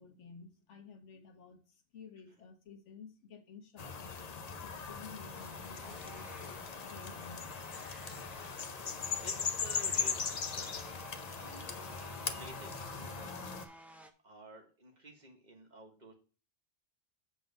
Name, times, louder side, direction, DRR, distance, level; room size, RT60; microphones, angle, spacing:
voice 1, 0.0-1.6 1.9-4.2 4.6-7.4, left 5 dB, 85° left, 1.4 m, -53 dB
sound 1, 3.8-13.6, left 5 dB, 45° left, 0.6 m, -39 dB
sound 2, 5.3-14.1, equal, ahead, 0.4 m, -54 dB
voice 2, 9.2-10.9 11.2-13.7 14.2-16.1, right 1 dB, 40° right, 1.5 m, -53 dB
7.2 x 3.9 x 5.2 m
omnidirectional pair, 1.2 m